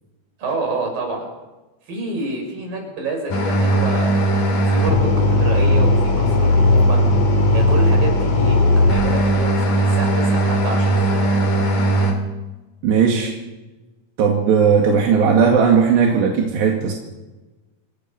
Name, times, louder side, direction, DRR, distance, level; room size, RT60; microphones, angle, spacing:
voice 1, 0.4-1.3 1.9-4.2 4.6-7.0 7.5-11.0, right 2 dB, 55° right, 2 dB, 7.6 m, -28 dB
sound 1, 3.3-12.1, equal, 55° left, 4.8 m, -17 dB
voice 2, 12.8-13.3 14.2-16.9, right 6 dB, 85° right, 0 dB, 4.3 m, -16 dB
28.0 x 20.0 x 6.0 m, 1.1 s
omnidirectional pair, 4.8 m